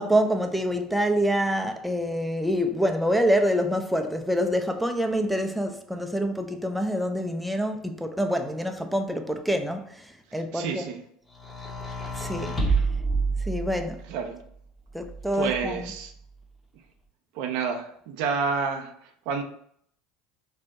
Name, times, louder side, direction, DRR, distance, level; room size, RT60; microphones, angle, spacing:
voice 1, 0.0-10.1 10.3-10.8 12.2-12.5 13.5-14.0 14.9-15.9, equal, ahead, 0.3 m, -26 dB
voice 2, 10.3-11.0 14.1-14.4 15.3-16.1 17.3-19.4, right 5 dB, 70° right, 0.4 m, -29 dB
sound 1, 11.4-14.1 15.0-16.0, right 3 dB, 15° left, 0.7 m, -29 dB
2.7 x 2.1 x 3.5 m
hypercardioid pair, 85°, 0 cm